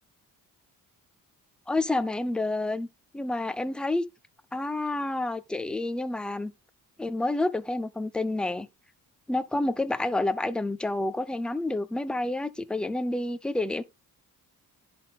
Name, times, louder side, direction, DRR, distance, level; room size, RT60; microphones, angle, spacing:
voice 1, 1.7-2.9 3.1-4.0 4.5-6.5 7.0-8.7 9.3-13.8, left 2 dB, 5° left, 0.4 m, -29 dB
10.5 x 3.6 x 4.0 m
cardioid pair, 140°, 34 cm